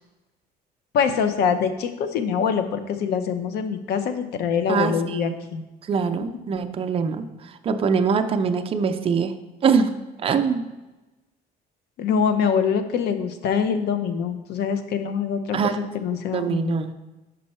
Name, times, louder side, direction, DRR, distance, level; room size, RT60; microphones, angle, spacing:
voice 1, 0.9-5.6 12.0-16.8, left 6 dB, 75° left, 8 dB, 0.7 m, -24 dB
voice 2, 4.7-5.4 5.9-7.2 7.6-9.3 9.6-9.9 10.2-10.7 15.5-15.8 16.3-16.9, right 5 dB, 35° right, 7 dB, 0.5 m, -23 dB
5.5 x 5.4 x 4.2 m, 1.1 s
cardioid pair, 110°, 17 cm